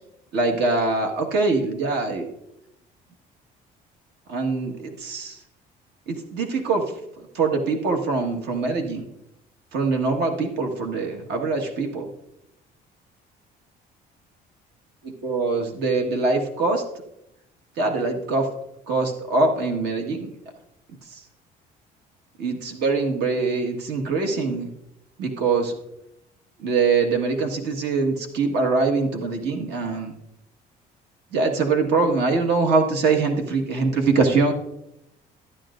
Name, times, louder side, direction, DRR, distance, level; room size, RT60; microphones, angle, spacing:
voice 1, 0.3-2.3 4.3-5.4 6.1-6.8 7.3-9.1 9.7-12.0 15.0-16.8 17.8-18.5 18.9-20.3 22.4-24.7 25.2-25.7 26.6-30.1 31.3-34.5, right 3 dB, 80° right, 3 dB, 1.6 m, -23 dB
12.5 x 10.0 x 2.5 m, 0.83 s
cardioid pair, 110°, 17 cm